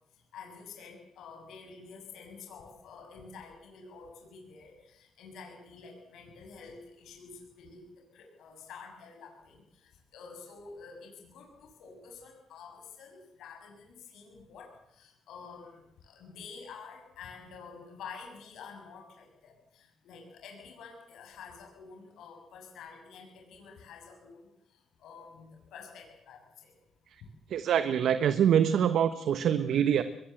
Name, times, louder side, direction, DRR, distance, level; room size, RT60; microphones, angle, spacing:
voice 1, 0.3-7.8 8.1-24.5 25.0-26.7, left 5 dB, 80° left, 2 dB, 6.9 m, -49 dB
voice 2, 27.5-30.0, right 9 dB, 70° right, 11 dB, 1.2 m, -25 dB
23.0 x 20.5 x 7.9 m, 0.81 s
cardioid pair, 90°, 0 cm